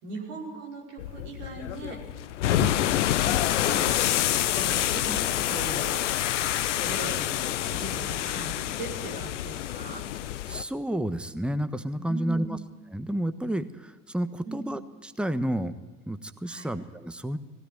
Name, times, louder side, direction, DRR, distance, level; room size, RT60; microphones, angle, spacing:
voice 1, 0.0-2.0 3.2-4.0 4.5-6.0 6.8-10.0 12.1-12.6 14.4-14.7 16.5-16.7, right 3 dB, 65° right, -2 dB, 5.2 m, -39 dB
sound 1, 1.0-10.6, left 13 dB, 75° left, 0.7 m, -27 dB
voice 2, 10.5-12.6 12.9-15.7 16.1-17.4, right 1 dB, 5° right, 11 dB, 1.2 m, -30 dB
19.0 x 16.5 x 9.4 m, 1.1 s
figure-of-eight pair, 55°, 36 cm